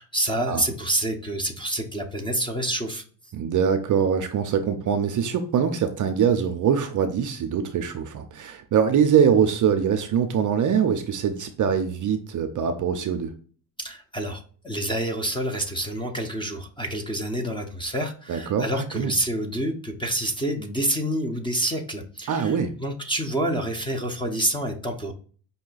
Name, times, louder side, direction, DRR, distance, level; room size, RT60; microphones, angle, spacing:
voice 1, 0.0-3.0 13.8-25.1, right 1 dB, 10° left, 4 dB, 0.7 m, -28 dB
voice 2, 3.3-13.3 18.3-19.1 22.3-22.8, right 7 dB, 40° right, 7 dB, 0.6 m, -23 dB
5.4 x 2.2 x 3.9 m, 0.43 s
supercardioid pair, 95°, 50 cm